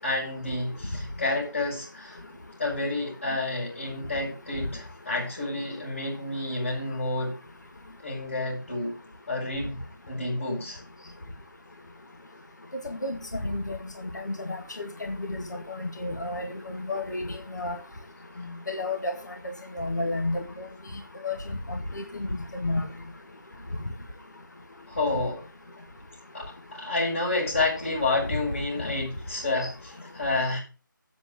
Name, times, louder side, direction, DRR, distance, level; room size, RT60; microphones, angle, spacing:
voice 1, 0.0-2.2 2.6-7.3 8.0-8.9 9.3-9.8 10.1-10.8 24.9-25.4 26.3-30.6, left 2 dB, 35° left, -6 dB, 6.1 m, -29 dB
voice 2, 13.4-13.8 14.1-17.8 18.7-19.1 19.7-20.7 21.2-21.4 21.7-22.0 22.5-22.8, left 2 dB, 55° left, 4 dB, 2.2 m, -31 dB
8.5 x 7.7 x 6.8 m, 0.33 s
figure-of-eight pair, 175°, 11 cm